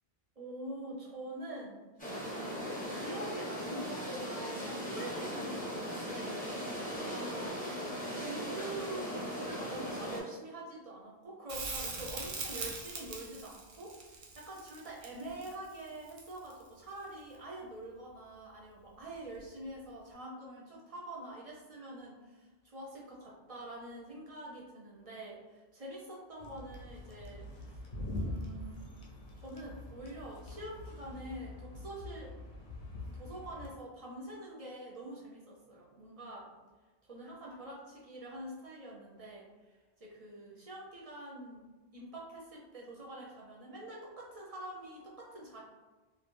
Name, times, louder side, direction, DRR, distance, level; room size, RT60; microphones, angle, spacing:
voice 1, 0.4-7.6 8.1-27.8 28.1-28.9 29.4-32.3 32.9-36.5 37.1-41.6 41.9-45.6, right 1 dB, 50° right, -4 dB, 0.5 m, -46 dB
sound 1, 2.0-10.2, equal, 10° left, 0.5 m, -38 dB
Crackle, 11.5-16.6 19.4-19.5, right 4 dB, 90° right, 0.9 m, -41 dB
sound 2, 26.4-33.7, left 1 dB, 60° left, 0.6 m, -44 dB
2.4 x 2.1 x 3.0 m, 1.2 s
omnidirectional pair, 1.1 m